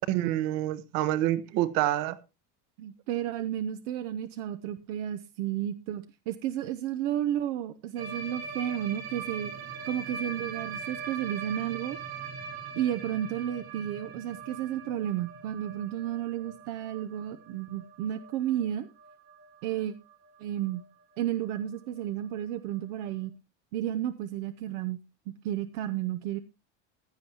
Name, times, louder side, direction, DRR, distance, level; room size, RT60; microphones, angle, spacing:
voice 1, 0.1-2.2, right 14 dB, 65° right, 1.1 m, -27 dB
voice 2, 2.8-9.5 9.8-12.0 12.8-18.9 19.6-19.9 20.4-20.8 21.2-23.3 23.7-25.0 25.4-26.4, right 11 dB, 80° right, 0.8 m, -32 dB
sound 1, 8.0-19.8 20.1-20.3 20.6-20.8 21.1-21.2 21.5-21.6 22.7-22.8, right 5 dB, 45° right, 1.7 m, -41 dB
15.5 x 10.5 x 2.9 m
cardioid pair, 140°, 34 cm